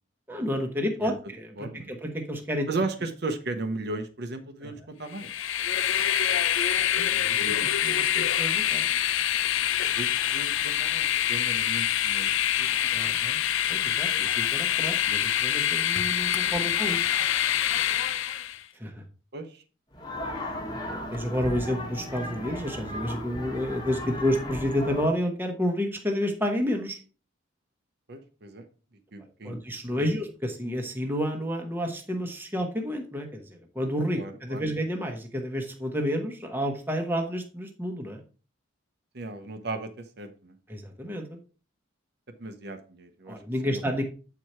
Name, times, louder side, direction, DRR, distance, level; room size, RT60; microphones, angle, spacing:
voice 1, 0.3-2.7 4.6-4.7 6.9-8.9 12.9-13.4 13.7-17.0 18.8-19.0 20.9-27.0 29.4-38.2 40.7-41.4 43.3-44.0, equal, 10° right, 3 dB, 1.0 m, -30 dB
voice 2, 1.6-1.9 2.7-5.3 7.4-7.7 9.8-12.3 12.6-13.2 16.4-16.7 19.3-19.6 28.1-28.7 29.1-29.6 30.0-30.1 34.1-34.6 39.1-40.6 42.4-43.8, right 2 dB, 50° right, 6 dB, 0.8 m, -36 dB
Train, 5.1-18.6, left 10 dB, 75° left, 0.5 m, -25 dB
sound 1, 19.9-25.1, left 1 dB, 20° left, 1.3 m, -36 dB
7.8 x 4.7 x 4.3 m, 0.37 s
head